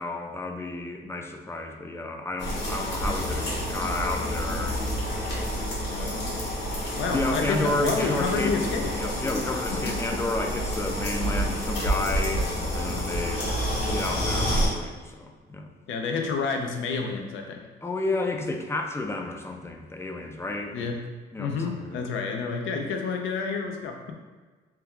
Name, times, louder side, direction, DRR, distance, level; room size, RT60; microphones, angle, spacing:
voice 1, 0.0-4.9 5.3-5.6 7.1-8.5 9.0-13.5 13.8-15.7 17.8-20.9 21.3-22.1, left 2 dB, 15° left, 3 dB, 0.4 m, -31 dB
sound 1, 2.4-14.7, equal, 60° left, 1.2 m, -29 dB
voice 2, 7.0-8.9 9.8-10.2 15.9-17.6 20.7-21.0 21.4-24.1, left 4 dB, 75° left, 3 dB, 0.5 m, -29 dB
2.8 x 2.2 x 3.6 m, 1.4 s
cardioid pair, 90°, 20 cm